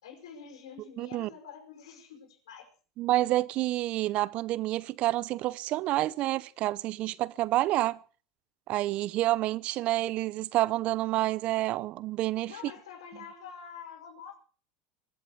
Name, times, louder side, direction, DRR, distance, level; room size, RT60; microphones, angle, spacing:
voice 1, 0.0-2.7 12.5-14.4, left 7 dB, 90° left, 5.6 m, -47 dB
voice 2, 1.0-1.3 3.0-8.0 8.7-12.5, right 16 dB, 50° right, 0.7 m, -28 dB
23.0 x 7.9 x 6.6 m
supercardioid pair, 120°, 3 cm